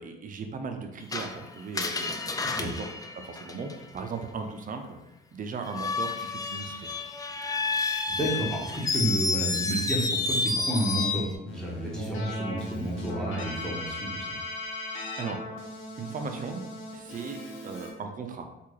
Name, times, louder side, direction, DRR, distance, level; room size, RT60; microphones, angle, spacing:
voice 1, 0.0-2.9 3.1-5.0 5.3-7.0 15.2-15.4 16.0-16.6 16.9-18.5, right 5 dB, 45° right, 5 dB, 0.5 m, -37 dB
Screech, 1.1-4.0 5.6-11.4, left 3 dB, 20° left, 0.3 m, -30 dB
voice 2, 8.1-14.3, right 1 dB, 5° left, -5 dB, 1.1 m, -30 dB
Keyboard (musical), 11.5-17.9, left 1 dB, 85° left, 0.8 m, -38 dB
3.5 x 2.4 x 3.1 m, 0.94 s
cardioid pair, 90°, 20 cm